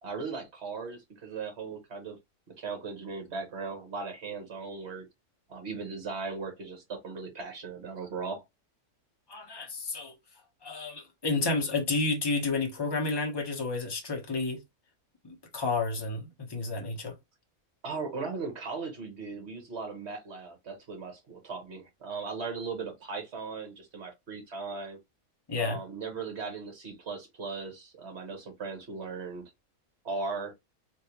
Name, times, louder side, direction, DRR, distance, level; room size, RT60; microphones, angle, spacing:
voice 1, 0.0-2.2 2.6-5.1 5.5-8.4 17.8-25.0 25.6-29.5 30.0-30.5, right 4 dB, 55° right, 1.5 m, -38 dB
voice 2, 9.3-10.1 10.6-14.6 15.2-17.1 25.5-25.8, left 3 dB, 20° left, 0.9 m, -31 dB
3.5 x 2.6 x 2.9 m
omnidirectional pair, 1.4 m